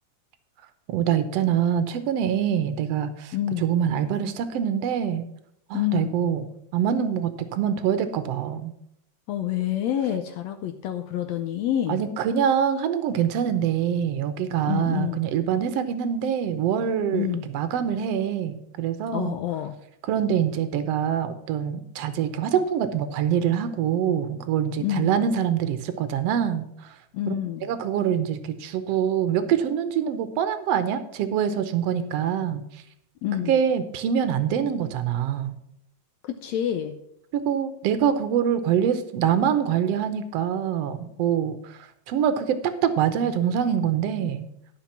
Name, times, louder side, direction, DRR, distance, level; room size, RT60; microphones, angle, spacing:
voice 1, 0.9-5.2 5.7-6.4 6.7-8.7 11.9-19.3 20.0-27.0 27.3-27.4 27.6-32.8 33.4-35.6 37.3-44.5, right 8 dB, 75° right, 11 dB, 1.6 m, -25 dB
voice 2, 3.3-3.6 5.7-6.1 9.3-12.0 14.7-15.2 17.1-17.4 19.1-19.7 24.8-25.1 27.1-27.7 33.2-33.6 36.3-36.9, left 11 dB, 75° left, 7 dB, 1.7 m, -27 dB
11.5 x 5.9 x 5.7 m, 0.73 s
omnidirectional pair, 3.5 m